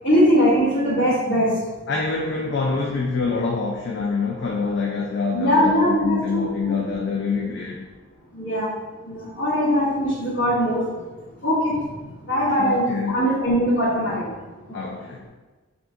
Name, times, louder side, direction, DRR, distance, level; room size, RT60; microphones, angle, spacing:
voice 1, 0.0-1.5 5.3-6.7 8.3-8.7 9.0-10.8 11.4-11.7 12.3-14.3, equal, 70° left, -13 dB, 1.2 m, -21 dB
voice 2, 1.9-7.9 12.5-13.2 14.7-15.2, left 4 dB, 55° left, -1 dB, 0.4 m, -26 dB
3.6 x 2.4 x 3.7 m, 1.2 s
head